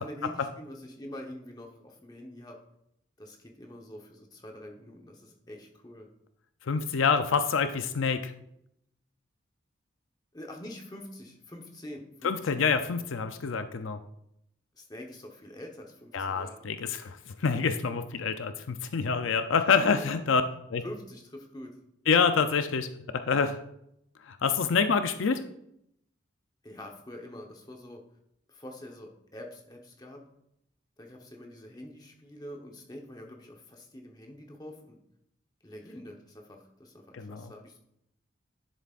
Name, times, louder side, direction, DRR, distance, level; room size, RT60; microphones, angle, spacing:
voice 1, 0.0-2.6 3.2-6.1 10.3-12.7 14.7-16.7 20.0-20.1 20.8-21.7 26.6-28.0 28.5-30.2 31.0-35.0 35.6-37.8, left 1 dB, 20° left, 1 dB, 1.0 m, -45 dB
voice 2, 6.6-8.3 12.2-14.0 16.1-20.4 20.7-20.8 22.1-23.6 24.3-25.4 37.1-37.5, left 5 dB, 80° left, 9 dB, 0.5 m, -27 dB
10.5 x 7.3 x 2.5 m, 0.77 s
head